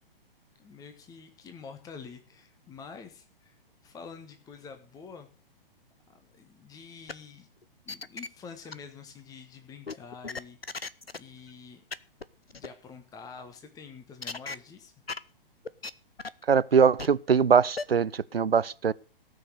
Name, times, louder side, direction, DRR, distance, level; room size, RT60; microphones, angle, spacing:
voice 1, 0.6-5.3 6.1-7.5 7.8-10.6 11.1-11.8 12.5-14.9, left 5 dB, 10° left, 1.4 m, -47 dB
sound 1, 7.1-7.2 7.6-8.3 8.7-8.8 9.9-11.2 11.5-11.6 11.9-12.0 12.2-12.3 12.5-12.7 14.2-14.6 15.1-15.2 15.6-15.9 16.2-16.4 17.0-17.1 17.8-17.9, left 4 dB, 90° left, 0.8 m, -35 dB
voice 2, 16.5-18.9, right 6 dB, 85° right, 0.5 m, -22 dB
17.5 x 6.5 x 6.6 m
figure-of-eight pair, 120°, 29 cm